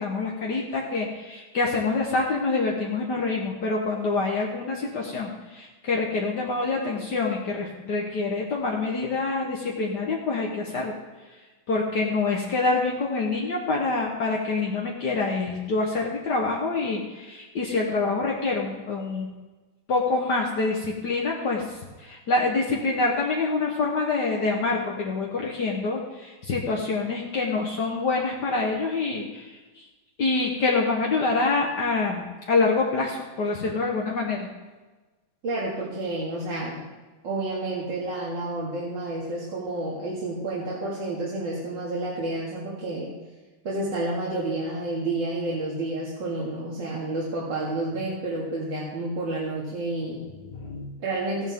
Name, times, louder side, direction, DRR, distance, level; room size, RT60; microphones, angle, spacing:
voice 1, 0.0-10.9 11.7-19.3 19.9-29.8 30.2-34.5 50.4-50.9, left 3 dB, 60° left, -2 dB, 1.8 m, -26 dB
voice 2, 35.4-36.8 37.2-43.1 43.6-50.2 51.0-51.5, right 2 dB, 65° right, -7 dB, 2.8 m, -30 dB
15.5 x 10.5 x 3.6 m, 1.2 s
omnidirectional pair, 2.2 m